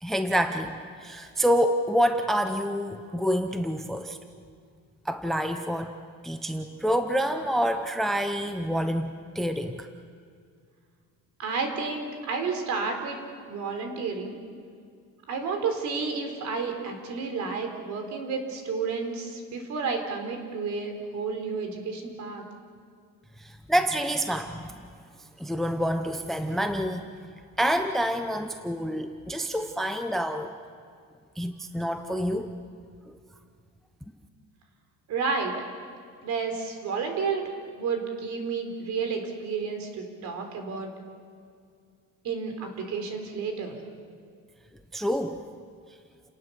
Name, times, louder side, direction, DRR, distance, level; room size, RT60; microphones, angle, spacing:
voice 1, 0.0-4.2 5.0-5.9 6.2-9.9 23.4-24.9 25.4-27.0 27.6-30.5 31.4-32.5 33.1-33.2 44.9-45.4, equal, ahead, 7 dB, 0.7 m, -27 dB
voice 2, 11.4-13.2 13.5-14.4 15.3-22.4 35.1-35.5 36.2-37.5 37.8-40.9 42.2-43.8, right 5 dB, 55° right, 5 dB, 3.8 m, -31 dB
30.0 x 18.5 x 7.0 m, 2.2 s
cardioid pair, 170°, 34 cm